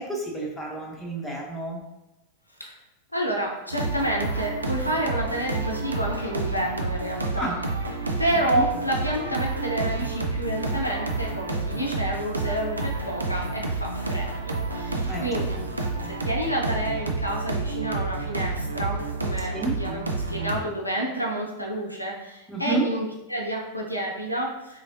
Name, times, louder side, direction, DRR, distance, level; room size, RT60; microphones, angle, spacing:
voice 1, 0.0-1.8 7.4-7.6 8.6-8.7 15.0-15.4 19.4-19.7 22.5-22.8, right 2 dB, 5° left, -2 dB, 0.8 m, -30 dB
voice 2, 3.1-7.5 8.2-15.6 16.1-20.0 20.3-24.8, right 1 dB, 85° left, -1 dB, 0.5 m, -29 dB
sound 1, 3.7-20.6, right 3 dB, 80° right, 0.4 m, -29 dB
3.7 x 3.2 x 2.6 m, 0.95 s
figure-of-eight pair, 90°, 0 cm